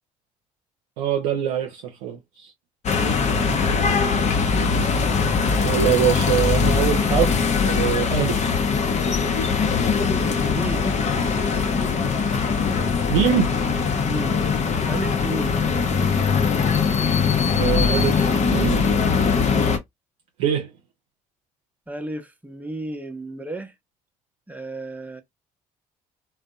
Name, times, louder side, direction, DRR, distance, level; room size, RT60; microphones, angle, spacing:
voice 1, 1.0-2.5 5.6-8.4 13.1-13.5 17.5-18.8 20.4-20.7, right 9 dB, 80° right, 0.5 m, -23 dB
sound 1, 2.9-19.8, left 5 dB, 45° left, 0.6 m, -21 dB
voice 2, 3.0-3.8 10.5-10.9 14.0-14.3 14.9-15.7 21.9-23.7 24.5-25.2, right 2 dB, 10° right, 0.7 m, -33 dB
2.5 x 2.1 x 2.3 m
hypercardioid pair, 60°, 17 cm